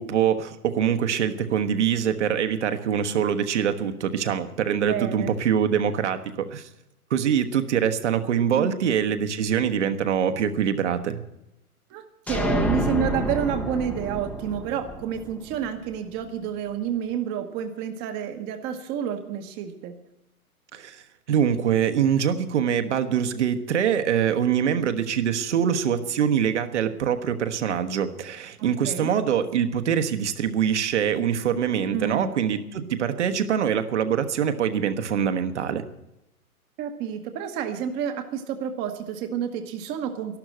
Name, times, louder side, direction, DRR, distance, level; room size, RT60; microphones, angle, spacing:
voice 1, 0.0-6.7 7.1-11.2 20.7-35.8, right 8 dB, 50° right, 8 dB, 1.3 m, -24 dB
voice 2, 4.8-5.3 8.6-8.7 11.9-19.9 28.8-29.1 31.9-32.3 36.8-40.4, right 8 dB, 20° right, 7 dB, 1.1 m, -29 dB
sound 1, 12.3-16.0, equal, 5° left, 0.8 m, -28 dB
12.5 x 12.0 x 7.7 m, 0.88 s
figure-of-eight pair, 110°, 44 cm